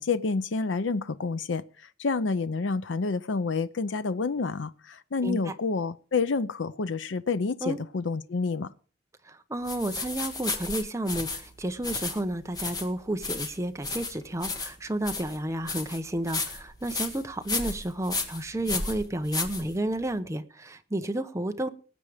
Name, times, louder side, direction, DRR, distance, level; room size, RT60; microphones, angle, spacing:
voice 1, 0.0-8.7, left 4 dB, 90° left, 0.6 m, -29 dB
voice 2, 5.2-5.5 7.6-7.8 9.2-21.7, right 1 dB, 15° right, 0.9 m, -31 dB
sound 1, 9.6-20.1, left 3 dB, 20° left, 1.8 m, -34 dB
19.0 x 8.3 x 5.0 m
head